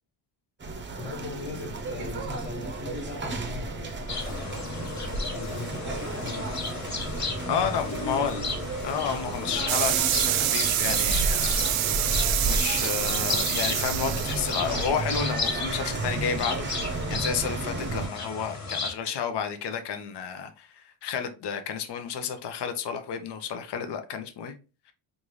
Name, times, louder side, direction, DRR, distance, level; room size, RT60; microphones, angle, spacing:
sound 1, 0.6-18.1, right 2 dB, 25° right, 0.7 m, -33 dB
voice 1, 1.0-4.8 5.3-6.8 7.5-8.6, left 2 dB, 90° left, 1.5 m, -40 dB
sound 2, 4.1-18.9, left 3 dB, 35° left, 1.1 m, -34 dB
voice 2, 7.5-8.4 8.8-11.9 12.4-24.5, left 7 dB, 60° left, 0.7 m, -31 dB
sound 3, 9.7-14.8, right 12 dB, 85° right, 0.6 m, -27 dB
3.6 x 2.6 x 3.0 m
cardioid pair, 85°, 47 cm